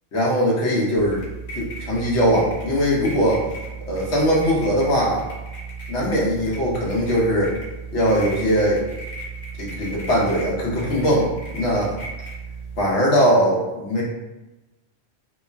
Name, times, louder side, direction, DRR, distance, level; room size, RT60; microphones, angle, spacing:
voice 1, 0.1-1.3 1.5-3.5 3.9-5.2 5.9-7.5 7.9-8.8 9.6-11.9 12.8-14.0, equal, 85° left, -5 dB, 1.0 m, -20 dB
sound 1, 0.9-12.8, right 4 dB, 45° left, 0.8 m, -35 dB
3.0 x 2.2 x 2.4 m, 1.0 s
omnidirectional pair, 1.1 m